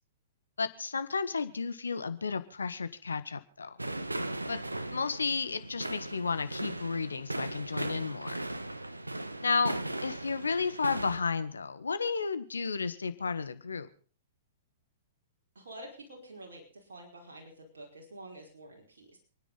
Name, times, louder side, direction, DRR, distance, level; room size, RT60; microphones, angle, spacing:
voice 1, 0.6-3.7 4.5-4.6 4.9-8.4 9.4-9.7 10.0-13.9, left 5 dB, 75° left, 11 dB, 1.6 m, -32 dB
sound 1, 3.8-11.2, right 1 dB, 90° right, 1.1 m, -37 dB
voice 2, 15.5-19.2, right 1 dB, 65° right, -1 dB, 5.0 m, -48 dB
28.0 x 10.0 x 4.1 m, 0.41 s
figure-of-eight pair, 110°, 0 cm